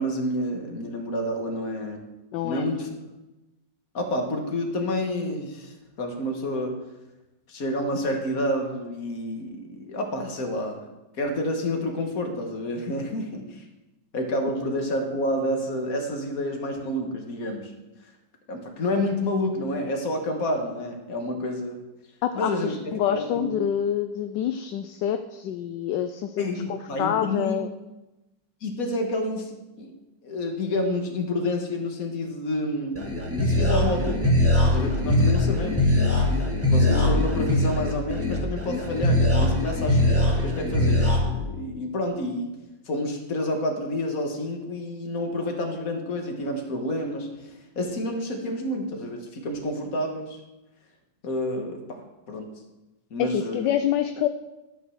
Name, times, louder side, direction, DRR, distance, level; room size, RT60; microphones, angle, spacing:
voice 1, 0.0-2.0 2.4-2.9 3.9-6.7 7.5-10.8 11.2-13.6 14.1-17.7 18.5-21.8 22.3-22.7 23.1-23.6 26.4-27.6 28.6-29.9 30.2-33.0 33.4-34.3 34.6-35.9 36.7-42.5 42.9-50.4 51.2-52.5 53.1-53.7, left 1 dB, 50° left, 3 dB, 1.9 m, -29 dB
voice 2, 2.3-2.7 22.2-27.7 53.2-54.3, left 10 dB, 75° left, 9 dB, 1.2 m, -27 dB
sound 1, 33.0-41.2, left 1 dB, 10° right, 1.7 m, -22 dB
12.0 x 6.0 x 6.4 m, 1.0 s
omnidirectional pair, 2.0 m